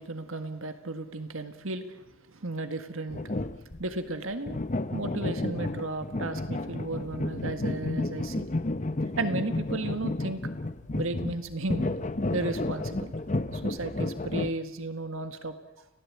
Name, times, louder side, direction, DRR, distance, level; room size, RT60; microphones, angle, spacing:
voice 1, 0.0-3.2 3.8-4.6 4.9-8.5 9.2-10.4 10.9-12.0 12.3-13.1 13.5-15.5, right 2 dB, 70° right, 8 dB, 1.8 m, -34 dB
sound 1, 3.1-3.8 4.5-14.5, left 2 dB, 35° left, 0.9 m, -31 dB
30.0 x 16.5 x 8.7 m, 0.96 s
head